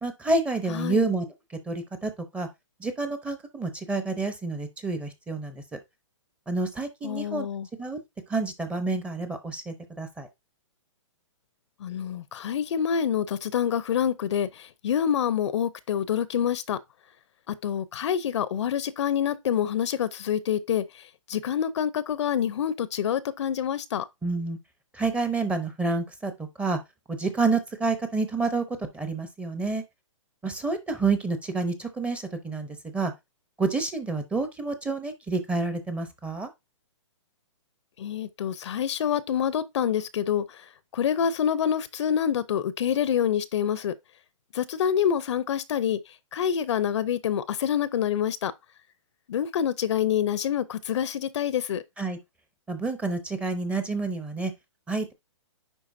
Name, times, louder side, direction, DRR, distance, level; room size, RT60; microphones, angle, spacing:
voice 1, 0.0-1.3 1.7-2.5 2.8-5.8 6.5-7.5 7.8-8.0 8.3-10.3 24.2-24.6 24.9-26.3 26.6-26.8 27.1-28.6 28.9-29.8 30.4-32.7 32.9-33.1 33.6-36.5 52.0-52.2 52.7-54.5 54.9-55.1, right 3 dB, 5° right, 0.7 m, -28 dB
voice 2, 0.7-1.1 7.0-7.7 11.8-16.8 17.5-20.8 21.3-24.0 38.0-40.6 40.9-43.9 44.5-46.0 46.3-48.5 49.3-51.8, left 9 dB, 65° left, 0.6 m, -26 dB
10.0 x 3.8 x 2.6 m
hypercardioid pair, 150°, 16 cm